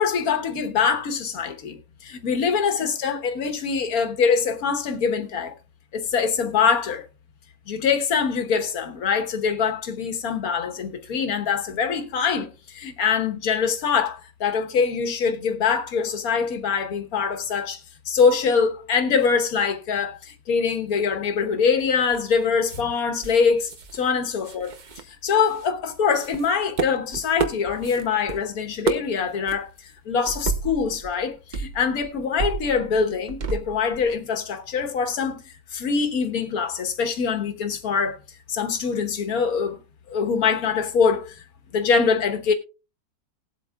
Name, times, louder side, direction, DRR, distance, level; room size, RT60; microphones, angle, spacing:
voice 1, 0.0-5.5 5.9-7.1 7.7-17.8 18.1-24.7 25.1-38.2 38.5-39.8 40.1-41.4 41.7-42.5, left 6 dB, 60° left, 1.6 m, -24 dB
sound 1, 21.8-22.4 22.7-22.8 23.2-24.1 24.4-25.7 26.1-28.4 28.6-29.2 29.5-29.6 30.3-31.2 31.5-34.2, right 5 dB, 45° right, 0.6 m, -31 dB
19.5 x 8.1 x 2.3 m
omnidirectional pair, 1.8 m